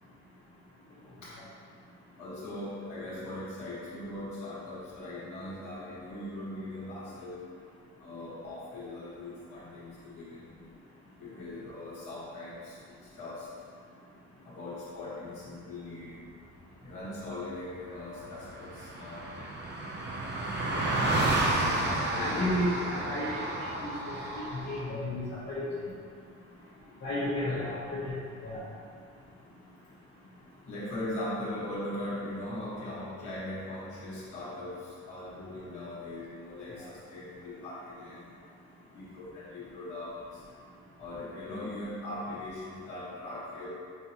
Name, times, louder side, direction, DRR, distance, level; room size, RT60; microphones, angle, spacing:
voice 1, 2.2-7.4 8.0-10.5 11.2-12.8 13.1-13.5 14.4-16.2 16.8-19.5 20.7-21.2 21.6-23.2 27.4-27.7 30.7-38.3 38.9-40.4 41.0-43.7, left 1 dB, 80° left, -9 dB, 1.5 m, -40 dB
Car passing by, 17.7-17.8 18.0-24.8, right 2 dB, 35° right, 0.7 m, -31 dB
voice 2, 22.0-23.9 24.3-25.6 27.0-28.1 28.4-28.6, left 1 dB, 60° left, -13 dB, 1.4 m, -33 dB
5.7 x 2.6 x 2.9 m, 2.2 s
cardioid pair, 90°, 30 cm